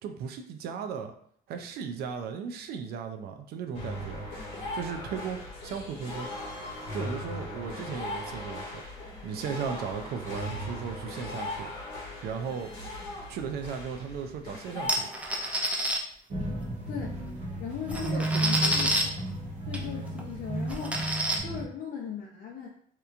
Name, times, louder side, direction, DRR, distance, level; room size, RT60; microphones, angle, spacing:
voice 1, 0.0-1.1 1.5-4.3 4.7-6.3 6.9-8.8 9.2-11.7 12.2-12.7 13.3-15.1 18.0-19.0, right 7 dB, 70° right, 6 dB, 0.4 m, -36 dB
sound 1, 3.7-15.7, left 1 dB, 85° left, 1.0 m, -39 dB
sound 2, 14.9-16.0 17.3-17.4 17.7-19.0 19.7-19.8 20.2-20.3 20.7-21.4, right 1 dB, 10° right, 0.4 m, -28 dB
sound 3, 16.3-21.7, right 1 dB, 40° right, 0.9 m, -33 dB
voice 2, 16.9-17.2 17.6-19.1 19.7-22.7, left 7 dB, 55° left, -2 dB, 0.4 m, -38 dB
2.9 x 2.2 x 2.4 m, 0.62 s
cardioid pair, 110°, 17 cm